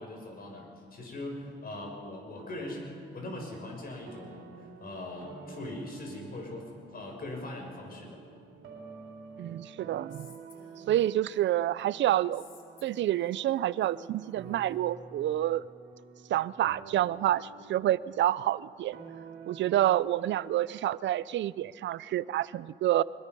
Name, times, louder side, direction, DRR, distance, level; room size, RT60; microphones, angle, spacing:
voice 1, 0.0-2.9 3.1-4.5 4.8-8.2, left 1 dB, 50° left, 1 dB, 6.7 m, -41 dB
sound 1, 2.3-20.8, right 5 dB, 85° right, 3.6 m, -50 dB
voice 2, 9.4-10.3 10.9-12.4 12.8-15.6 16.3-19.0 19.5-23.0, right 13 dB, 70° right, 19 dB, 0.5 m, -28 dB
Female speech woman speaking, 10.1-11.8 12.3-14.8, left 4 dB, 75° left, 3.0 m, -57 dB
24.0 x 21.5 x 5.5 m, 2.3 s
cardioid pair, 90°, 20 cm